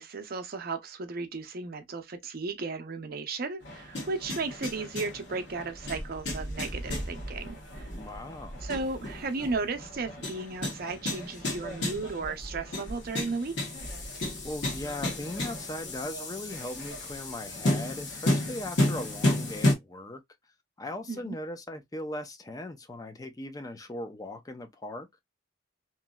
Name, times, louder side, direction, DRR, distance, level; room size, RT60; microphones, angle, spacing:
voice 1, 0.0-7.9 8.6-13.7 21.1-21.4, right 3 dB, 50° right, 0.6 m, -35 dB
sound 1, 3.6-19.7, left 1 dB, 65° left, 1.2 m, -33 dB
voice 2, 7.9-8.6 14.4-20.2 20.8-25.1, left 1 dB, 20° left, 0.5 m, -39 dB
3.0 x 2.6 x 2.3 m
head